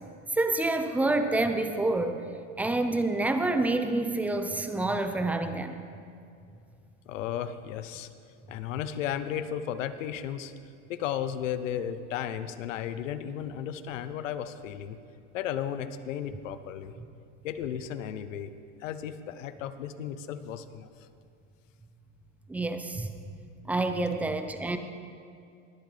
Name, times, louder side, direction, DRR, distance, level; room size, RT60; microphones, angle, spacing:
voice 1, 0.3-2.2 2.6-5.7 22.5-23.1 23.6-24.8, right 2 dB, 5° right, 7 dB, 0.3 m, -27 dB
voice 2, 7.1-8.1 8.5-10.5 10.9-15.0 15.3-16.9 17.4-18.5 18.8-20.9, left 9 dB, 80° left, 12 dB, 0.8 m, -34 dB
21.0 x 8.1 x 3.3 m, 2.4 s
supercardioid pair, 125°, 38 cm